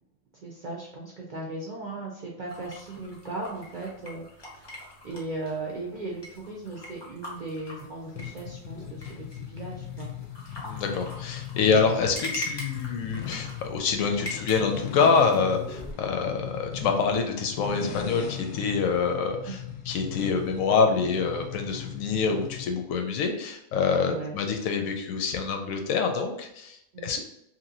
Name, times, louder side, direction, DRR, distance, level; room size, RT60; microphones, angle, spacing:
voice 1, 0.4-10.1 19.5-19.6 24.0-24.4 26.9-27.2, right 2 dB, 60° right, -3 dB, 0.5 m, -37 dB
sound 1, 2.5-15.9, left 1 dB, 30° left, 0.5 m, -42 dB
sound 2, 8.2-22.8, left 9 dB, 65° left, 0.8 m, -39 dB
voice 2, 10.6-19.6 19.9-27.2, left 5 dB, 85° left, 4 dB, 1.0 m, -26 dB
3.0 x 2.6 x 2.6 m, 0.79 s
omnidirectional pair, 1.4 m